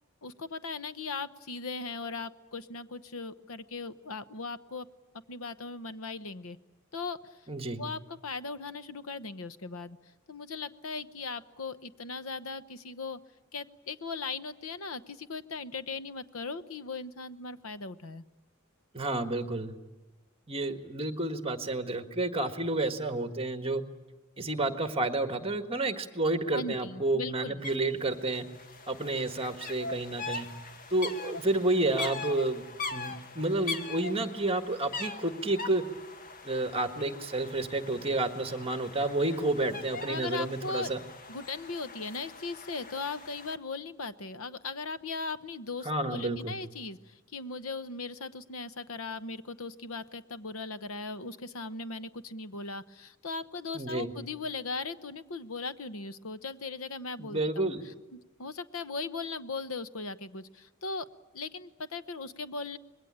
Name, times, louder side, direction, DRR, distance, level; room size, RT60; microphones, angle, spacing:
voice 1, 0.2-4.9 5.3-6.6 6.9-7.2 7.8-10.0 10.3-13.2 13.5-18.2 26.5-27.6 40.1-40.9 41.3-57.7 58.1-61.1 61.3-62.8, left 4 dB, 70° left, 13 dB, 0.9 m, -38 dB
voice 2, 7.5-7.8 18.9-19.8 20.5-23.8 24.4-28.5 28.9-30.5 30.9-32.6 32.9-35.9 36.4-41.0 45.8-46.6 53.7-54.1 57.2-57.8, right 2 dB, 25° right, 8 dB, 1.6 m, -30 dB
sound 1, 27.6-27.8 28.0-43.6, left 3 dB, 40° left, 1.8 m, -42 dB
26.0 x 21.0 x 8.7 m, 1.1 s
head